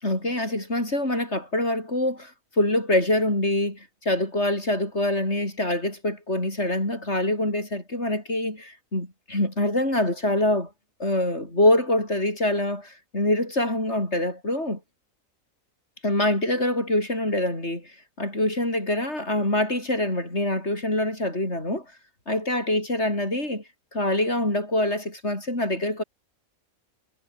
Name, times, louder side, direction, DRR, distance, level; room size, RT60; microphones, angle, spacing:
voice 1, 0.0-2.3 2.6-10.7 11.0-14.8 16.0-17.9 18.2-21.8 22.3-23.6 23.9-26.0, left 1 dB, 50° left, 8.2 m, -25 dB
omnidirectional pair, 1.4 m